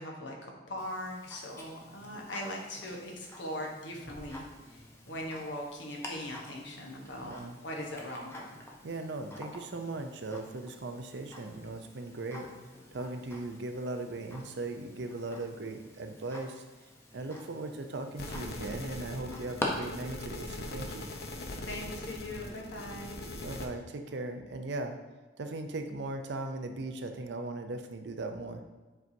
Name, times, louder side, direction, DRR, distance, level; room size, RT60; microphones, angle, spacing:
voice 1, 0.0-8.5 21.7-23.2, left 1 dB, 75° left, 0 dB, 1.2 m, -40 dB
Tick-tock, 0.8-19.7, left 1 dB, 15° left, 0.8 m, -47 dB
voice 2, 7.2-7.6 8.8-12.5 12.9-16.6 17.1-21.1 23.4-25.0 25.4-28.6, right 2 dB, 65° right, 6 dB, 0.6 m, -38 dB
sound 1, 18.2-23.7, left 1 dB, 55° left, 0.7 m, -41 dB
7.5 x 4.6 x 2.7 m, 1.3 s
head